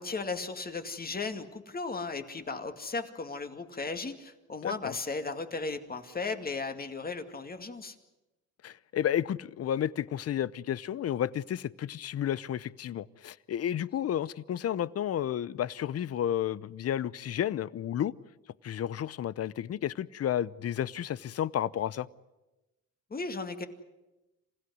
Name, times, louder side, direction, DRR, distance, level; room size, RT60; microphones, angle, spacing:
voice 1, 0.0-8.0 23.1-23.7, left 4 dB, 30° left, 2.3 m, -36 dB
voice 2, 4.6-5.0 8.6-18.1 18.6-22.1, left 10 dB, 55° left, 0.8 m, -32 dB
27.0 x 16.0 x 9.6 m
cardioid pair, 90°, 30 cm